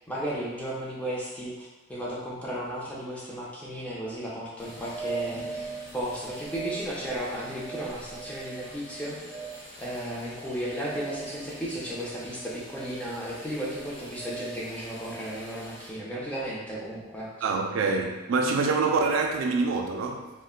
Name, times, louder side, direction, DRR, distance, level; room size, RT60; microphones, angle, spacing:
voice 1, 0.1-9.2 9.8-17.5, equal, 5° left, -6 dB, 0.5 m, -34 dB
sound 1, 4.6-15.9, right 4 dB, 80° left, 1.0 m, -40 dB
voice 2, 17.4-20.3, right 4 dB, 85° right, 2 dB, 0.3 m, -25 dB
2.5 x 2.1 x 3.7 m, 1.1 s
head